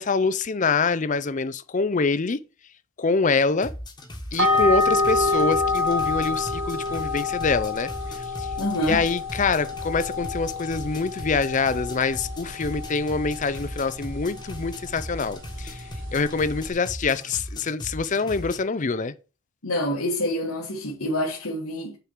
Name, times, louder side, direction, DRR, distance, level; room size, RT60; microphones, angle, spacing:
voice 1, 0.0-2.4 3.0-3.7 4.3-7.9 8.4-8.5 8.8-15.8 16.1-19.1, left 4 dB, 35° left, 0.5 m, -25 dB
sound 1, 3.6-18.6, equal, 20° left, 1.3 m, -38 dB
sound 2, 4.4-16.7, left 3 dB, 60° right, 1.6 m, -28 dB
voice 2, 8.6-9.0 19.6-22.0, equal, 80° left, 1.9 m, -27 dB
6.7 x 4.6 x 6.5 m
head